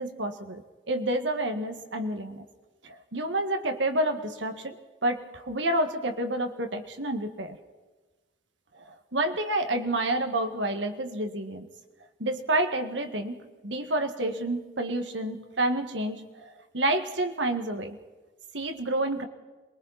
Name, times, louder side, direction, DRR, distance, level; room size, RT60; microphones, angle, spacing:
voice 1, 0.0-2.5 2.8-4.8 5.0-7.6 8.9-11.7 12.2-16.4 16.7-18.0 18.5-19.3, right 1 dB, 80° right, 6 dB, 1.9 m, -29 dB
27.0 x 23.0 x 4.3 m, 1.2 s
head